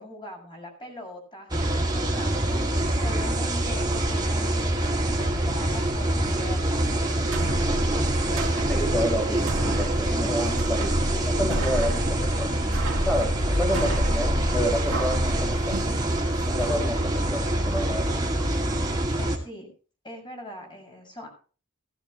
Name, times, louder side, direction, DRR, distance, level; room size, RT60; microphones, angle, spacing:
voice 1, 0.0-6.8 7.6-8.1 19.2-19.7 20.0-21.3, left 1 dB, 20° left, 1 dB, 7.0 m, -41 dB
sound 1, 1.5-19.4, right 1 dB, 20° right, 2.5 m, -25 dB
sound 2, 7.2-16.7, right 1 dB, 65° right, 1.9 m, -31 dB
voice 2, 8.6-12.5 13.0-15.8 16.5-18.1, equal, 5° left, -2 dB, 4.3 m, -29 dB
17.0 x 15.0 x 3.2 m, 0.38 s
head